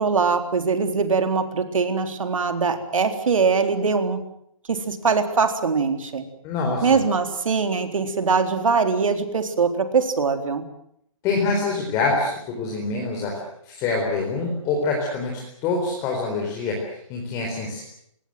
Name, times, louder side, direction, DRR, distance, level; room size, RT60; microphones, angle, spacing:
voice 1, 0.0-4.2 4.7-6.3 6.8-10.6, right 5 dB, 70° right, 7 dB, 4.0 m, -22 dB
voice 2, 6.4-7.0 11.2-17.8, left 3 dB, 20° left, 0 dB, 4.3 m, -25 dB
26.0 x 20.5 x 7.8 m, 0.72 s
hypercardioid pair, 165°, 17 cm